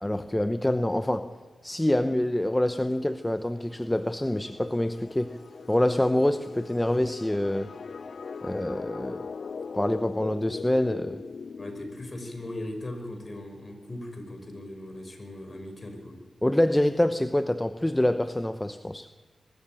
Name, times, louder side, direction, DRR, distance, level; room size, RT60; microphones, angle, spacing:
voice 1, 0.0-1.3 1.6-5.4 5.7-7.7 8.4-9.3 9.7-11.2 16.4-19.1, left 1 dB, 10° left, 10 dB, 0.9 m, -26 dB
sound 1, 2.4-12.9, left 5 dB, 65° left, 0.6 m, -41 dB
voice 2, 11.6-16.2, left 1 dB, 35° left, 5 dB, 5.5 m, -39 dB
22.5 x 13.5 x 9.1 m, 1.5 s
cardioid pair, 55°, 0 cm